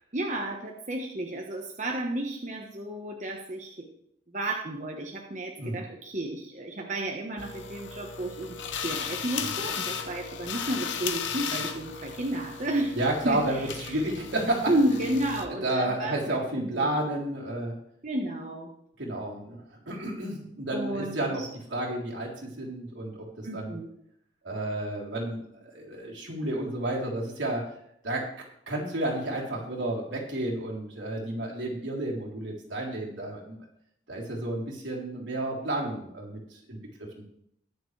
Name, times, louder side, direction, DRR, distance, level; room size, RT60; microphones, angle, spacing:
voice 1, 0.1-3.9 4.3-8.5 8.8-13.0 13.2-14.0 14.7-16.9 18.0-18.7 20.7-21.5 23.4-23.9, right 1 dB, 40° right, 0 dB, 1.2 m, -32 dB
sound 1, 7.4-15.4, left 7 dB, 80° left, 0.9 m, -36 dB
voice 2, 12.9-14.7 15.6-17.7 19.0-21.4 21.7-22.3 22.6-23.8 24.4-27.6 28.0-28.3 28.7-33.6 34.1-36.4 36.7-37.2, right 1 dB, 80° right, -3 dB, 3.5 m, -31 dB
21.0 x 7.1 x 3.3 m, 0.72 s
head